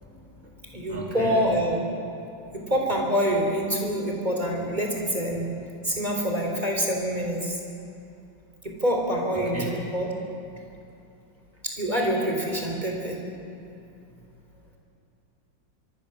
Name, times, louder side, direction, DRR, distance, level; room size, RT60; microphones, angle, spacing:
voice 1, 0.1-0.6 0.9-1.5 9.4-9.7, equal, 5° left, -3 dB, 2.8 m, -35 dB
voice 2, 0.7-1.8 2.5-5.5 5.8-7.6 8.6-10.1 11.6-13.2, equal, 20° right, 0 dB, 3.8 m, -26 dB
24.5 x 23.0 x 6.9 m, 2.7 s
omnidirectional pair, 2.0 m